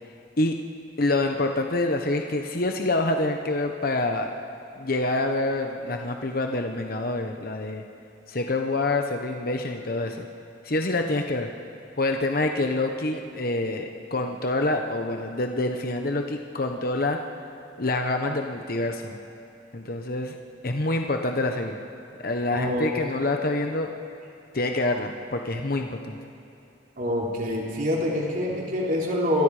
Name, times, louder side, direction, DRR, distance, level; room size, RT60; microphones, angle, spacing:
voice 1, 1.0-4.3 4.8-7.8 8.3-10.2 10.6-11.5 12.0-17.2 17.8-19.1 19.7-20.4 20.6-21.8 22.2-23.9 24.5-26.2, left 2 dB, 50° left, 4 dB, 1.1 m, -26 dB
voice 2, 22.5-22.9 27.0-29.4, left 1 dB, 50° right, -3 dB, 3.7 m, -26 dB
27.5 x 20.5 x 5.0 m, 2.9 s
head